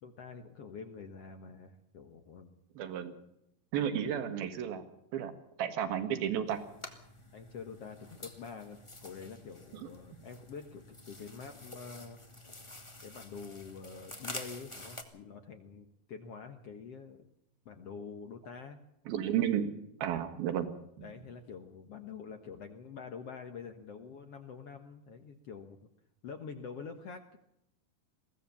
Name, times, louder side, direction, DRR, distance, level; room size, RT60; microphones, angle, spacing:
voice 1, 0.0-2.6 7.3-12.2 13.0-17.2 17.7-18.8 21.0-25.8 26.2-27.4, left 5 dB, 55° left, 6 dB, 1.8 m, -46 dB
voice 2, 2.8-3.1 3.7-4.8 5.1-5.3 5.6-6.6 9.8-9.9 19.1-19.7 20.0-20.7 21.0-21.1, right 9 dB, 80° right, 8 dB, 3.6 m, -32 dB
sound 1, 6.5-15.0, left 1 dB, 20° left, 0.8 m, -48 dB
22.0 x 16.5 x 7.1 m, 0.80 s
omnidirectional pair, 4.2 m